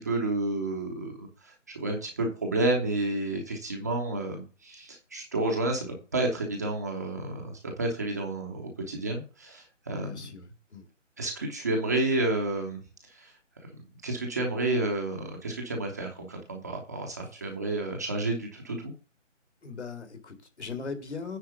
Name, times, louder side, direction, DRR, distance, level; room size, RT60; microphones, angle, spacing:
voice 1, 0.0-10.3 11.2-13.3 14.0-18.9, right 2 dB, 15° right, 0.8 m, -30 dB
voice 2, 10.0-10.9 19.6-21.4, left 5 dB, 60° left, 2.4 m, -39 dB
9.4 x 4.4 x 6.8 m
figure-of-eight pair, 150°, 38 cm